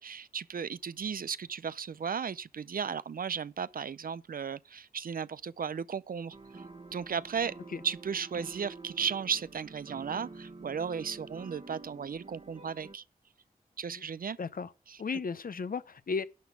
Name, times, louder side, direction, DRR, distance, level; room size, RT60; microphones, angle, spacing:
voice 1, 0.0-6.6 6.9-7.5 7.8-13.0 13.8-14.4 14.9-15.0, right 6 dB, 70° right, 0.5 m, -35 dB
sound 1, 6.3-13.0, right 3 dB, 45° right, 1.5 m, -48 dB
voice 2, 14.4-14.7 15.0-16.3, left 5 dB, 65° left, 0.8 m, -35 dB
11.5 x 4.1 x 8.0 m
wide cardioid pair, 70°, 15 cm